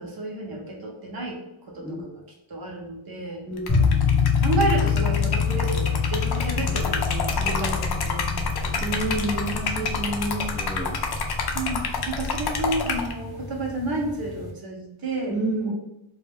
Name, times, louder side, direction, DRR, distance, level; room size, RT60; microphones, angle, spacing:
voice 1, 0.0-2.2 2.5-3.5 4.4-9.1 11.5-15.4 15.7-15.8, right 2 dB, 45° right, 0 dB, 0.7 m, -31 dB
voice 2, 3.5-3.8 6.5-6.9 7.4-8.0 8.8-10.9 15.3-15.7, right 2 dB, ahead, -3 dB, 0.5 m, -30 dB
Liquid, 3.6-13.1, left 4 dB, 55° left, 0.5 m, -29 dB
sound 1, 3.7-14.5, left 6 dB, 30° left, 0.8 m, -26 dB
2.3 x 2.2 x 3.3 m, 0.87 s
wide cardioid pair, 110°, 49 cm